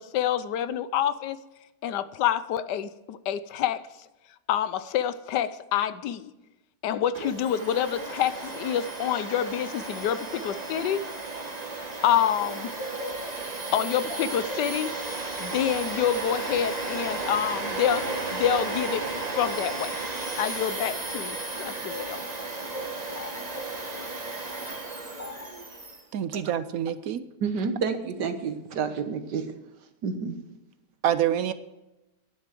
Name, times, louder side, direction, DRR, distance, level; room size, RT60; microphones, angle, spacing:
voice 1, 0.0-1.4 1.8-3.8 4.5-6.3 6.8-11.0 12.0-12.7 13.7-14.9 15.4-19.0 19.4-20.0 20.4-22.2, left 10 dB, 80° left, 1.3 m, -27 dB
Domestic sounds home sounds, 7.1-26.0, right 3 dB, 25° right, 1.5 m, -34 dB
sound 1, 12.4-17.4 17.8-22.2 22.7-24.2 25.2-25.6, left 1 dB, 40° left, 2.0 m, -41 dB
voice 2, 26.1-27.2 31.0-31.5, right 10 dB, 65° right, 1.0 m, -26 dB
voice 3, 27.4-29.5 30.0-30.4, right 5 dB, 80° right, 1.8 m, -29 dB
10.5 x 10.5 x 7.5 m
omnidirectional pair, 1.8 m